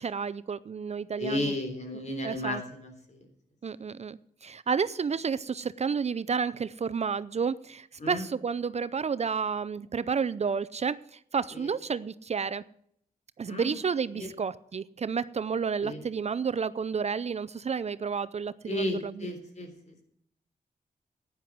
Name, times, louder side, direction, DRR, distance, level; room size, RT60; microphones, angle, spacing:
voice 1, 0.0-1.5 2.2-2.6 3.6-11.0 11.3-12.6 13.4-19.3, right 6 dB, 45° right, 17 dB, 0.5 m, -31 dB
voice 2, 1.2-3.3 8.0-8.3 11.5-11.7 13.5-13.7 14.1-14.3 15.8-16.0 18.7-20.0, left 1 dB, 50° left, 6 dB, 3.5 m, -34 dB
12.5 x 9.5 x 6.1 m, 0.70 s
cardioid pair, 85°, 16 cm